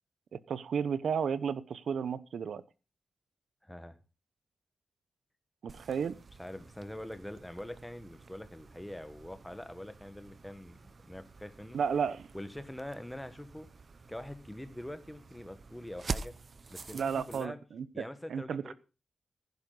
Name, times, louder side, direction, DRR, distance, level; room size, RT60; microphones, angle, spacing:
voice 1, 0.3-2.6 5.6-6.2 11.7-12.3 16.9-18.7, right 6 dB, 75° right, 16 dB, 0.9 m, -33 dB
voice 2, 3.6-4.0 5.9-6.0 6.4-10.8 11.0-11.8 12.3-13.7 14.1-16.3 16.7-17.6 17.9-18.7, left 1 dB, 5° left, 10 dB, 1.4 m, -44 dB
sound 1, 5.7-17.5, right 4 dB, 40° right, 0.7 m, -47 dB
15.5 x 11.0 x 4.0 m, 0.32 s
wide cardioid pair, 150°, 0 cm